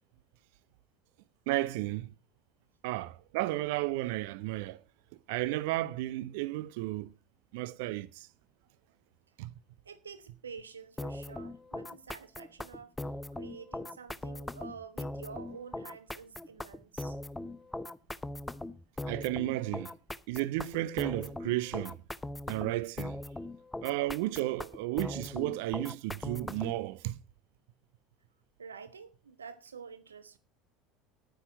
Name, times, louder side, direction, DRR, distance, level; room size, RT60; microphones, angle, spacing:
voice 1, 1.5-2.1 2.8-4.8 5.3-7.1 7.5-8.3 9.4-9.5 19.1-19.9 20.3-22.0 22.5-23.2 23.8-27.2, right 17 dB, 60° right, 0.6 m, -33 dB
voice 2, 9.8-17.2 28.6-30.4, right 6 dB, 80° right, 1.1 m, -48 dB
sound 1, 11.0-26.8, left 1 dB, 10° left, 0.7 m, -40 dB
10.5 x 9.7 x 5.2 m
figure-of-eight pair, 70°, 0 cm